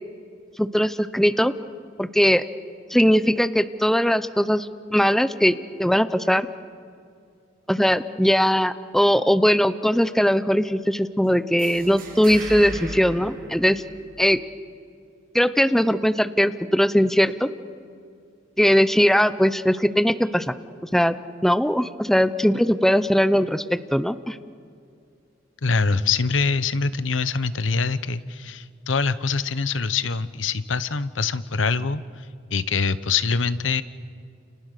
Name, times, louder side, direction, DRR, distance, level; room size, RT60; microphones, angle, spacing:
voice 1, 0.6-1.5 2.0-2.4 2.9-5.5 5.8-6.5 7.7-13.8 14.2-14.4 15.3-17.5 18.6-20.5 20.9-21.2 21.4-24.4, equal, ahead, 11 dB, 0.7 m, -20 dB
sound 1, 11.6-14.3, right 2 dB, 50° right, 7.4 m, -37 dB
voice 2, 25.6-33.8, left 4 dB, 90° left, 14 dB, 1.0 m, -24 dB
30.0 x 29.0 x 6.7 m, 2.4 s
head